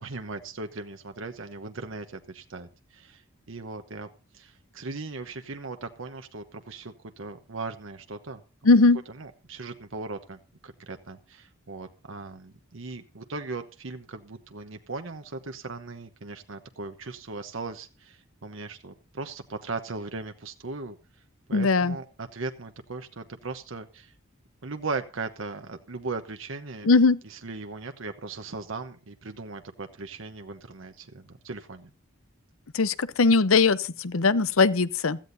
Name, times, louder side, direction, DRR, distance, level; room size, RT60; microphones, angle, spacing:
voice 1, 0.0-4.1 4.3-8.4 9.2-21.0 21.5-24.1 24.6-26.9 27.3-31.9, right 3 dB, 70° right, 1.0 m, -38 dB
voice 2, 8.6-9.0 21.5-22.0 26.8-27.2 32.7-35.2, left 4 dB, 85° left, 0.8 m, -20 dB
16.0 x 14.0 x 2.7 m
head